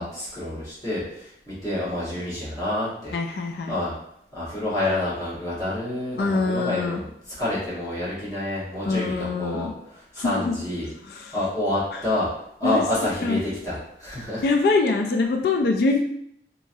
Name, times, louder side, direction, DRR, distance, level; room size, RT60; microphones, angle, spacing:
voice 1, 0.0-3.1 3.7-3.9 4.3-7.1 7.4-12.3 12.6-14.4, left 1 dB, 20° left, -10 dB, 1.3 m, -28 dB
voice 2, 3.1-3.7 6.2-7.0 8.8-9.7 10.2-10.5 11.1-11.3 11.9-12.0 12.6-12.8 13.2-13.4 14.4-16.0, left 3 dB, 55° left, 3 dB, 0.3 m, -24 dB
2.9 x 2.5 x 2.7 m, 0.74 s
head